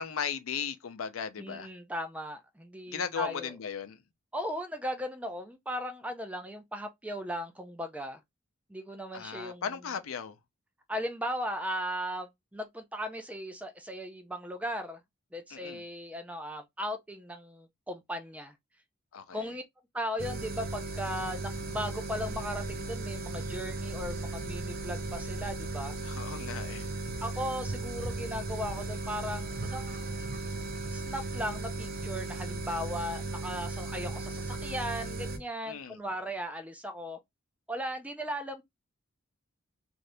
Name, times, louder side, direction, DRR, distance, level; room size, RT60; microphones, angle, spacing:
voice 1, 0.0-1.7 2.9-4.0 9.1-10.4 15.5-15.8 19.1-19.5 26.0-26.9 35.7-36.0, left 7 dB, 90° left, 0.6 m, -36 dB
voice 2, 1.4-3.5 4.3-8.2 8.7-9.6 10.9-15.0 15.3-18.5 19.3-19.6 19.9-25.9 27.2-30.2 30.9-37.2 37.7-38.6, equal, 5° right, 0.4 m, -37 dB
sound 1, 20.2-35.4, right 2 dB, 50° right, 0.6 m, -36 dB
2.7 x 2.5 x 3.3 m
head